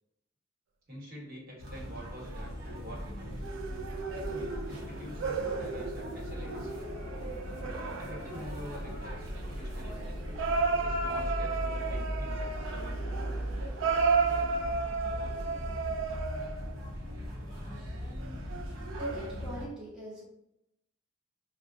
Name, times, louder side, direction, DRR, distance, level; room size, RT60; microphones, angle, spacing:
voice 1, 0.9-3.5 4.7-6.7 8.0-10.2 10.7-12.6 14.3-14.4, equal, 50° right, -4 dB, 1.2 m, -46 dB
sound 1, 1.6-19.7, equal, 85° right, 0.9 m, -38 dB
sound 2, 1.8-2.2 3.4-9.4 10.4-16.9 18.2-19.6, right 4 dB, 65° right, 0.3 m, -34 dB
sound 3, 4.4-13.6, left 2 dB, 40° left, 0.4 m, -49 dB
voice 2, 19.0-20.2, right 1 dB, 5° right, -7 dB, 0.6 m, -42 dB
3.7 x 2.2 x 2.5 m, 0.81 s
head